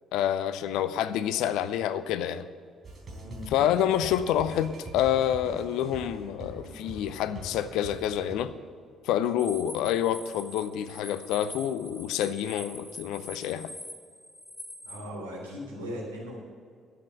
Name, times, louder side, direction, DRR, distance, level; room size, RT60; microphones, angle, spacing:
voice 1, 0.1-2.5 3.5-8.5 9.0-13.7, left 10 dB, 60° left, 0.5 m, -28 dB
sound 1, 2.8-8.3, right 1 dB, 35° right, 4.0 m, -43 dB
voice 2, 3.2-3.6 14.9-16.4, equal, 75° right, 3.5 m, -38 dB
sound 2, 9.4-15.0, left 1 dB, 20° left, 2.2 m, -44 dB
12.0 x 8.0 x 7.6 m
figure-of-eight pair, 45°, 0 cm